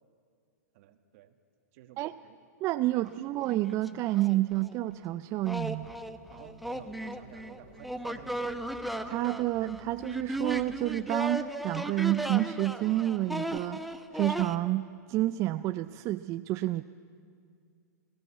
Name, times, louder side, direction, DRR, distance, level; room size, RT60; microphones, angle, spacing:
voice 1, 0.7-1.3 1.7-2.4 2.9-3.1 6.3-8.7, right 11 dB, 55° right, 7 dB, 1.6 m, -52 dB
voice 2, 2.6-5.9 9.0-16.8, right 16 dB, 35° right, 11 dB, 0.4 m, -29 dB
sound 1, 3.1-3.2 3.5-4.8 5.5-14.6, right 1 dB, ahead, 0.8 m, -36 dB
sound 2, 5.4-10.9, left 1 dB, 70° left, 6.6 m, -55 dB
21.0 x 15.5 x 8.5 m, 2.2 s
hypercardioid pair, 120°, 9 cm